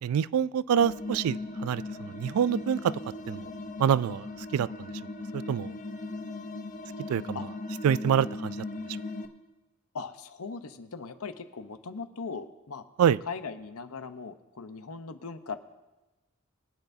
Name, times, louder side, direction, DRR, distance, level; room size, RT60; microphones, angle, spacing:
voice 1, 0.0-2.9 3.3-3.5 3.8-4.3 4.5-4.9 5.3-5.7 7.1-7.5 7.8-8.6 13.0-13.2, right 8 dB, 85° right, 18 dB, 0.3 m, -26 dB
sound 1, 0.8-9.3, left 2 dB, 35° left, 0.7 m, -38 dB
voice 2, 9.9-12.8 13.3-15.6, left 4 dB, 90° left, 10 dB, 0.8 m, -39 dB
22.5 x 9.2 x 2.7 m, 1.1 s
head